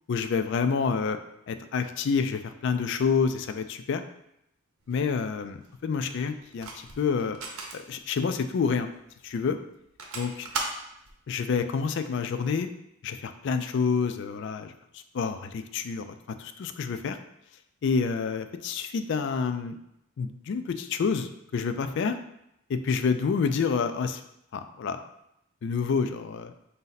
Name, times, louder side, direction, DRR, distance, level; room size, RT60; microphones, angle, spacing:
voice 1, 0.1-1.2 1.5-4.0 4.9-7.4 7.7-8.9 9.2-9.6 10.1-10.5 11.3-12.7 13.0-17.2 17.8-19.8 20.2-22.2 22.7-24.2 24.5-25.0 25.6-26.5, left 5 dB, 55° left, 10 dB, 0.3 m, -28 dB
sound 1, 4.8-11.2, right 3 dB, 80° right, 0.7 m, -38 dB
4.1 x 2.7 x 3.9 m, 0.80 s
head